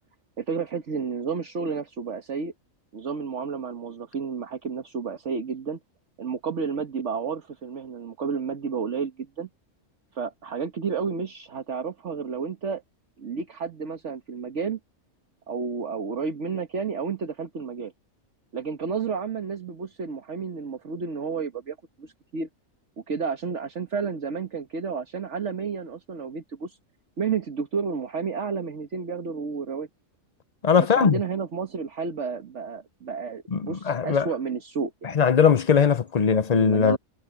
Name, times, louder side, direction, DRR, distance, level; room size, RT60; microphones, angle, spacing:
voice 1, 0.4-2.5 2.9-5.8 6.2-9.5 10.1-12.8 13.2-14.8 15.5-17.9 18.5-22.5 23.0-26.8 27.2-29.9 30.8-35.2 36.5-37.0, right 5 dB, 60° right, 1.6 m, -31 dB
voice 2, 30.6-31.2 33.5-34.3 35.1-37.0, left 6 dB, 40° left, 0.7 m, -20 dB
omnidirectional pair, 1.4 m